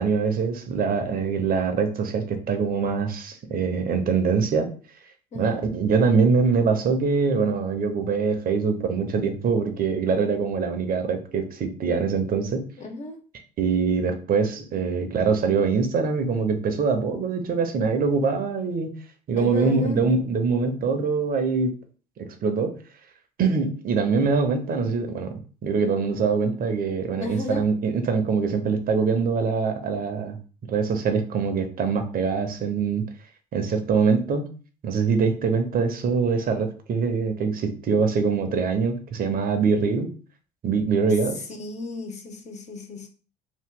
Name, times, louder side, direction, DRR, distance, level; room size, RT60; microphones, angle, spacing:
voice 1, 0.0-4.7 5.3-12.6 13.6-19.0 19.3-21.7 22.2-22.8 23.4-25.3 25.6-30.4 30.7-33.0 33.5-34.5 34.8-40.1 40.6-41.4, right 5 dB, 45° right, 0.8 m, -23 dB
voice 2, 12.8-13.2 19.4-20.0 27.2-27.7 41.5-43.1, left 3 dB, 35° left, 0.8 m, -34 dB
2.9 x 2.2 x 3.7 m
hypercardioid pair, 60°, 20 cm